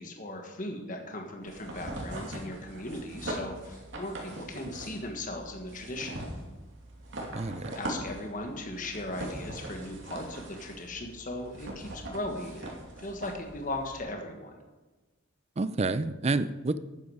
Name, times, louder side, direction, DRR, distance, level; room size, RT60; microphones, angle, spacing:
voice 1, 0.0-6.2 7.1-7.3 7.7-14.6, left 1 dB, 40° left, 3 dB, 1.5 m, -38 dB
sound 1, 1.4-14.0, right 1 dB, 65° right, 2.6 m, -41 dB
voice 2, 7.3-7.7 15.6-16.8, right 3 dB, 30° right, 13 dB, 0.5 m, -29 dB
12.0 x 9.5 x 4.8 m, 1.2 s
head